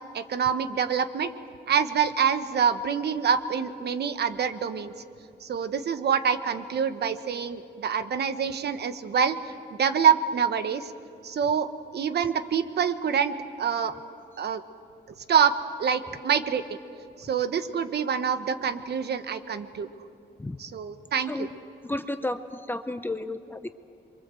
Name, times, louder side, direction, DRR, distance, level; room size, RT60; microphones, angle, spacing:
voice 1, 0.1-1.3 1.7-4.9 5.4-9.4 9.8-10.9 11.2-11.7 11.9-13.9 14.4-14.6 15.3-15.5 15.8-16.8 17.2-19.9 20.6-21.5, right 7 dB, 65° right, 10 dB, 1.2 m, -26 dB
voice 2, 21.8-22.4 22.7-23.8, left 2 dB, 10° left, 9 dB, 0.7 m, -31 dB
27.5 x 23.5 x 7.7 m, 2.6 s
wide cardioid pair, 160°, 19 cm